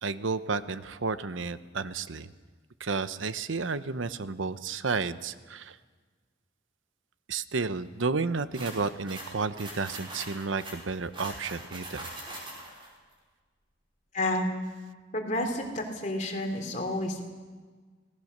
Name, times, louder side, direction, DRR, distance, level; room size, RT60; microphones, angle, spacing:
voice 1, 0.0-2.3 2.8-5.8 7.3-12.1, right 4 dB, 80° right, 13 dB, 0.8 m, -32 dB
sound 1, 8.5-12.9, right 1 dB, 25° right, 5.5 m, -42 dB
voice 2, 14.1-14.4 15.1-17.2, left 1 dB, 40° left, 2 dB, 3.4 m, -30 dB
27.0 x 18.5 x 6.6 m, 1.4 s
head